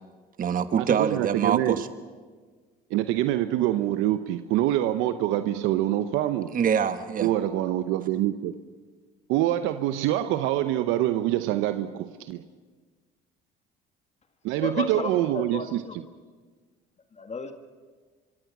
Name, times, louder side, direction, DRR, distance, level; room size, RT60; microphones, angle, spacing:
voice 1, 0.4-1.9 6.5-7.3, right 7 dB, 45° right, 10 dB, 1.3 m, -25 dB
voice 2, 1.0-1.8 2.9-6.5 7.2-8.5 9.3-12.4 14.4-15.8, right 13 dB, 75° right, 10 dB, 0.9 m, -25 dB
voice 3, 14.6-16.0 17.1-17.5, left 4 dB, 35° left, 6 dB, 1.9 m, -33 dB
25.0 x 24.0 x 6.1 m, 1.5 s
supercardioid pair, 75°, 20 cm